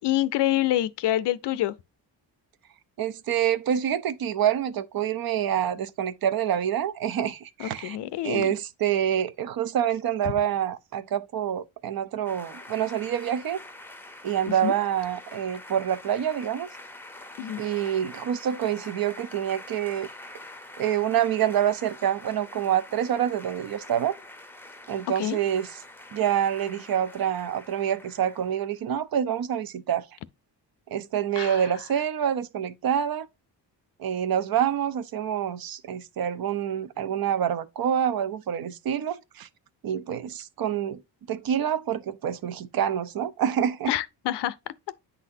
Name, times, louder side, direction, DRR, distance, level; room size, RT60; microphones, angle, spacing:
voice 1, 0.0-1.7 7.6-8.5 10.3-10.4 14.6-14.7 17.4-17.6 25.2-25.4 31.4-31.7 43.9-44.6, left 13 dB, 70° left, 0.6 m, -26 dB
voice 2, 3.0-8.0 8.2-13.6 14.2-16.7 17.6-20.1 20.8-24.2 24.9-25.7 26.1-30.1 30.9-33.3 34.0-39.5 39.8-41.0 41.3-43.9, right 9 dB, 55° right, 0.6 m, -27 dB
sound 1, 12.3-28.7, left 2 dB, 5° left, 0.6 m, -45 dB
9.6 x 4.1 x 2.6 m
cardioid pair, 140°, 43 cm